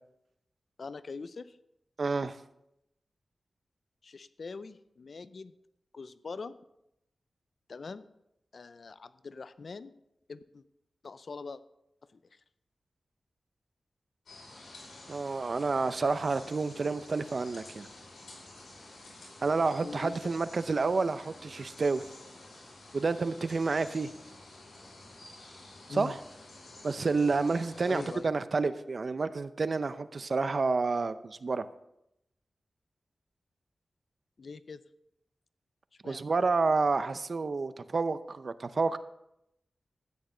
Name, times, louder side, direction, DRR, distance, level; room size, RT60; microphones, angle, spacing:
voice 1, 0.8-1.6 4.0-5.5 5.9-6.5 7.7-8.1 8.5-9.9 10.3-10.6 11.0-11.6 12.1-12.4 16.7-17.0 19.8-20.2 25.9-26.2 27.9-28.3 34.4-34.8 36.0-36.3, left 4 dB, 65° left, 14 dB, 0.5 m, -43 dB
voice 2, 2.0-2.4 15.1-17.9 19.4-22.0 22.9-24.1 25.9-26.2 26.8-31.7 36.0-39.0, right 4 dB, 55° right, 13 dB, 0.6 m, -29 dB
sound 1, 14.3-28.2, left 2 dB, 85° left, 5.2 m, -50 dB
13.0 x 9.5 x 3.9 m, 0.82 s
wide cardioid pair, 70°, 0 cm